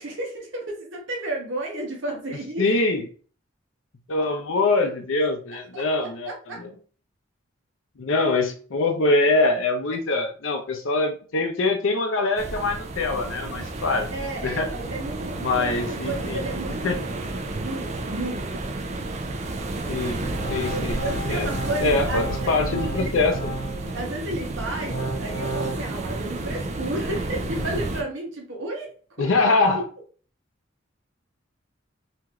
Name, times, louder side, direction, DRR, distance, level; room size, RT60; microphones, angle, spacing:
voice 1, 0.0-2.6 5.2-5.3 5.7-6.6 14.1-18.8 20.6-23.1 23.9-28.9 29.2-29.3, right 1 dB, 70° right, 0 dB, 0.8 m, -33 dB
voice 2, 2.6-3.0 4.1-6.7 8.0-14.1 14.4-14.7 15.4-16.4 16.8-17.0 19.9-20.2 20.5-21.0 21.3-21.5 21.8-23.6 29.2-29.8, left 3 dB, 85° left, 5 dB, 0.5 m, -23 dB
sound 1, 12.4-28.0, right 2 dB, 35° right, 0.3 m, -31 dB
Organ, 20.2-24.0 24.5-25.8, right 2 dB, 30° left, 0.8 m, -33 dB
3.0 x 2.5 x 2.3 m, 0.41 s
head